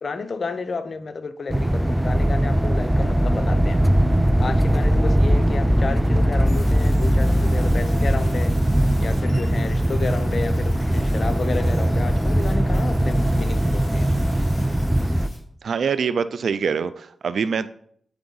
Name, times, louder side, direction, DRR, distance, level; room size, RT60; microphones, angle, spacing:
voice 1, 0.0-3.8 4.4-8.5 9.0-14.1, left 4 dB, 60° left, 10 dB, 0.7 m, -31 dB
sound 1, 1.5-15.3, right 1 dB, 10° right, 0.5 m, -20 dB
sound 2, 6.5-15.4, left 1 dB, 25° left, 3.3 m, -45 dB
voice 2, 15.6-17.7, right 6 dB, 75° right, 13 dB, 0.4 m, -24 dB
8.8 x 4.5 x 4.0 m, 0.64 s
cardioid pair, 50°, 0 cm